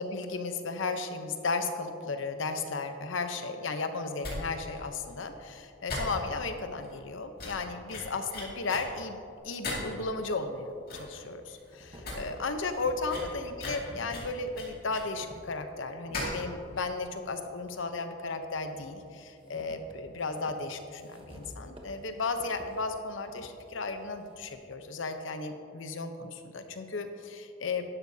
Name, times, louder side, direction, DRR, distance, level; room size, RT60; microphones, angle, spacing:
voice 1, 0.0-9.2 9.4-27.8, left 3 dB, 80° left, 7 dB, 0.8 m, -35 dB
sound 1, 4.2-4.4 4.7-4.8 5.1-5.2 5.9-6.5 6.8-7.0 7.4-8.8 9.6-10.0 10.5-10.6 10.9-11.2 11.5-11.6 11.9-12.2 12.4-12.5 13.1-15.2 16.1-16.4 16.7-16.8, left 2 dB, 50° left, 2.3 m, -37 dB
sound 2, 9.4-9.5 10.5-10.6 11.1-16.2 16.8-18.0 18.4-24.5, equal, 25° right, 1.0 m, -52 dB
12.0 x 11.0 x 2.8 m, 2.6 s
head